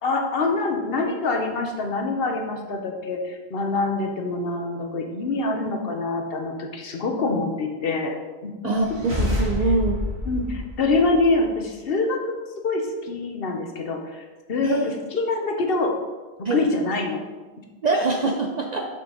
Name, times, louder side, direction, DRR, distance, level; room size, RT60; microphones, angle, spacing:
voice 1, 0.0-8.2 8.4-8.5 10.2-12.3 12.6-16.0 16.5-17.2 17.9-18.0, left 3 dB, 65° left, 3 dB, 1.1 m, -25 dB
sound 1, 8.8-11.5, left 1 dB, 90° right, 2.5 m, -28 dB
voice 2, 9.2-10.0 14.6-14.9 16.4-16.6 17.8-18.9, right 3 dB, 50° right, 2 dB, 0.6 m, -24 dB
6.1 x 5.7 x 3.8 m, 1.3 s
omnidirectional pair, 1.1 m